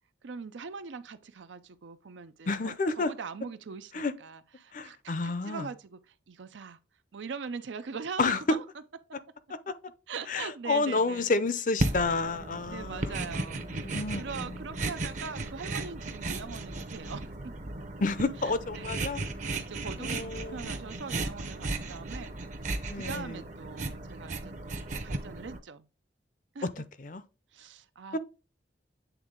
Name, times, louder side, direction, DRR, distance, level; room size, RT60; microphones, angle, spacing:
voice 1, 0.2-6.0 6.3-6.8 7.1-8.6 10.1-11.4 12.7-13.7 14.2-17.6 18.4-19.0 19.4-22.4 22.9-25.9 26.5-26.9 27.5-28.2, right 5 dB, 80° right, 0.5 m, -42 dB
voice 2, 2.5-3.1 3.9-4.1 4.7-5.7 8.2-8.6 9.7-9.8 10.3-14.8 18.0-19.2 20.0-20.7 22.9-23.4 26.6-27.2 28.1-28.2, left 3 dB, 45° left, 0.5 m, -30 dB
sound 1, 11.8-25.6, right 2 dB, 40° right, 0.7 m, -35 dB
8.1 x 3.5 x 3.7 m
head